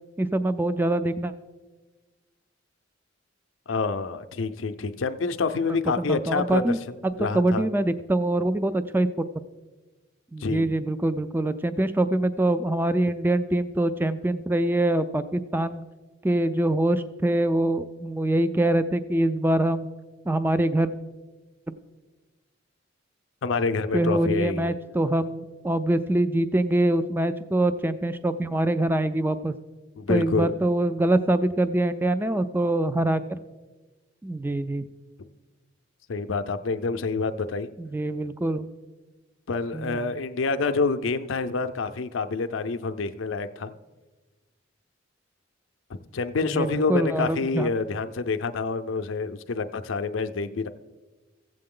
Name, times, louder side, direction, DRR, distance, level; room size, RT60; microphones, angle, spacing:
voice 1, 0.2-1.3 6.0-6.8 7.0-9.2 10.3-15.8 16.2-19.9 20.3-20.9 23.9-29.5 30.1-33.4 34.2-34.9 37.8-38.7 39.7-40.0 46.5-47.7, right 1 dB, 10° right, 12 dB, 0.3 m, -24 dB
voice 2, 3.7-6.7 7.2-7.7 10.4-10.7 23.4-24.7 30.0-30.5 36.1-37.7 39.5-43.7 46.1-50.7, left 4 dB, 90° left, 9 dB, 0.5 m, -27 dB
15.5 x 7.7 x 3.7 m, 1.3 s
head